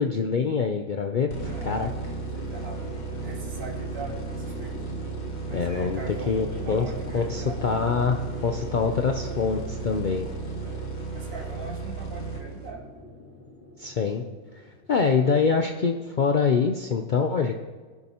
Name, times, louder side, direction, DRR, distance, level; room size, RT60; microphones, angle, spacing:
voice 1, 0.0-1.9 5.5-10.3 13.8-14.2 14.5-14.6 14.9-17.5, left 5 dB, 80° left, 4 dB, 0.4 m, -25 dB
sound 1, 1.3-13.0, right 4 dB, 35° left, 1.1 m, -35 dB
sound 2, 1.3-16.2, left 2 dB, 10° right, 1.1 m, -42 dB
voice 2, 1.4-1.9 2.3-2.9 3.2-4.8 5.4-7.6 10.6-10.8 11.1-12.8, right 4 dB, 80° right, -1 dB, 2.3 m, -41 dB
20.0 x 6.7 x 2.9 m, 1.4 s
omnidirectional pair, 1.6 m